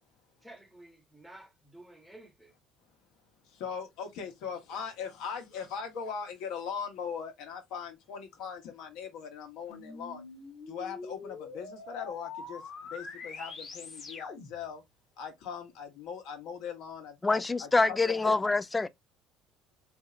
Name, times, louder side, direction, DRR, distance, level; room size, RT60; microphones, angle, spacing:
voice 1, 0.4-2.5, right 1 dB, 5° right, 1.1 m, -52 dB
voice 2, 3.4-10.2 10.7-14.8 15.2-18.5, left 6 dB, 75° left, 1.1 m, -40 dB
sound 1, 9.7-14.7, left 4 dB, 45° left, 1.1 m, -44 dB
voice 3, 17.2-18.9, left 3 dB, 20° left, 0.3 m, -26 dB
3.0 x 2.7 x 2.4 m
supercardioid pair, 85°, 0 cm